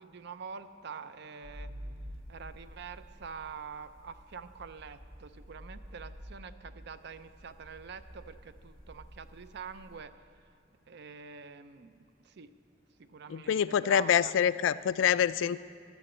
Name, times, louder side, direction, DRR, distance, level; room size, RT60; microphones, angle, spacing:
voice 1, 0.0-1.7 2.3-10.1 10.9-12.5 13.0-14.3, right 6 dB, 60° right, 12 dB, 0.5 m, -46 dB
sound 1, 1.4-10.0, equal, 85° right, 3.3 m, -49 dB
voice 2, 13.3-15.6, left 8 dB, 75° left, 16 dB, 0.3 m, -26 dB
11.5 x 7.0 x 8.2 m, 2.3 s
head